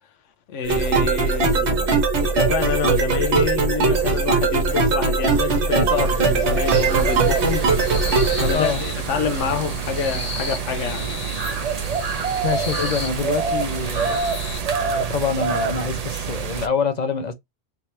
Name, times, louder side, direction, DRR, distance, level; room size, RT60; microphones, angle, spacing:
voice 1, 0.5-1.9 2.2-7.7 8.4-11.1 12.8-12.9, left 6 dB, 90° left, 1.0 m, -27 dB
sound 1, 0.6-8.5, right 4 dB, 65° right, 1.3 m, -20 dB
sound 2, 5.5-16.7, right 6 dB, 45° right, 0.5 m, -27 dB
sound 3, 6.9-14.6, left 3 dB, 70° left, 1.7 m, -35 dB
voice 2, 8.5-8.8 12.4-14.2 14.8-17.3, left 5 dB, 50° left, 0.5 m, -25 dB
3.6 x 2.8 x 3.1 m
omnidirectional pair, 1.2 m